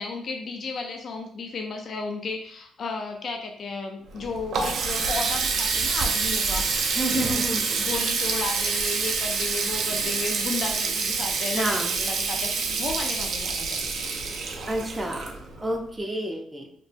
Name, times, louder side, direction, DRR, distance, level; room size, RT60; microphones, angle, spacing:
voice 1, 0.0-6.6 7.2-7.5 7.8-14.2, left 4 dB, 55° left, 3 dB, 0.4 m, -34 dB
Water tap faucet, 4.1-15.8, right 4 dB, 70° right, 0.4 m, -27 dB
voice 2, 7.0-7.6 11.5-11.9 14.7-16.7, right 1 dB, 15° right, 1 dB, 0.4 m, -29 dB
2.9 x 2.1 x 3.2 m, 0.64 s
cardioid pair, 90°, 0 cm